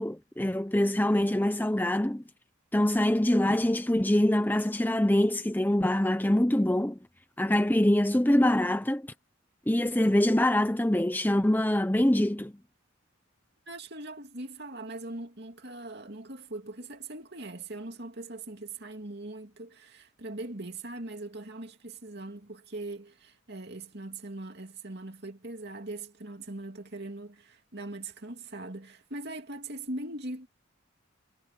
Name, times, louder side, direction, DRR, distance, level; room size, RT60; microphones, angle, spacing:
voice 1, 0.0-2.2 2.7-7.0 7.4-9.1 9.7-12.5, left 1 dB, 10° left, 0.6 m, -24 dB
voice 2, 13.7-30.5, right 2 dB, 50° right, 2.8 m, -41 dB
head